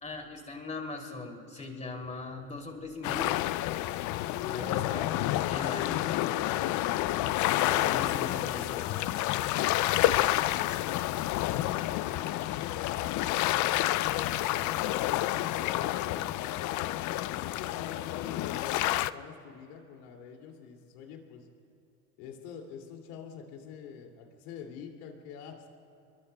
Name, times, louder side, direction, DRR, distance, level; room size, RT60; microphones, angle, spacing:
voice 1, 0.0-3.4 4.5-5.2 5.4-6.0 7.6-9.0, left 3 dB, 15° left, 2 dB, 2.9 m, -40 dB
sound 1, 3.0-19.1, left 15 dB, 40° left, 0.4 m, -29 dB
voice 2, 4.2-4.9 5.3-6.7 7.8-9.3 10.3-16.8 17.3-21.5 22.2-25.7, left 7 dB, 75° left, 2 dB, 2.7 m, -45 dB
28.0 x 22.5 x 2.3 m, 2.7 s
supercardioid pair, 110°, 47 cm